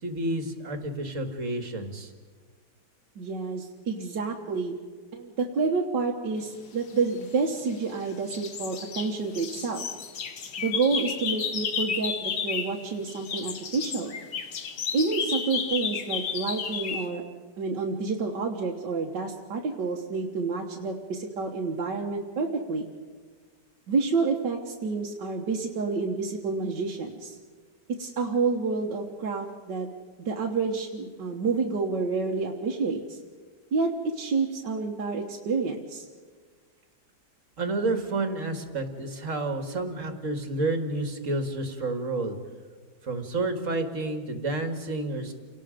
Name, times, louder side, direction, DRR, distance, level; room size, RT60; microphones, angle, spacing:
voice 1, 0.0-2.1 37.6-42.4 43.0-45.3, right 2 dB, 45° right, 6 dB, 2.0 m, -30 dB
voice 2, 3.2-4.8 5.1-9.9 10.6-14.1 14.9-17.2 17.6-22.9 23.9-27.4 27.9-29.9 30.2-33.2 33.7-36.1, right 4 dB, 85° right, -1 dB, 2.0 m, -29 dB
sound 1, 7.2-8.0 8.3-12.8 13.1-17.1, left 6 dB, 75° left, 1.9 m, -32 dB
29.0 x 18.5 x 5.1 m, 1.5 s
omnidirectional pair, 1.9 m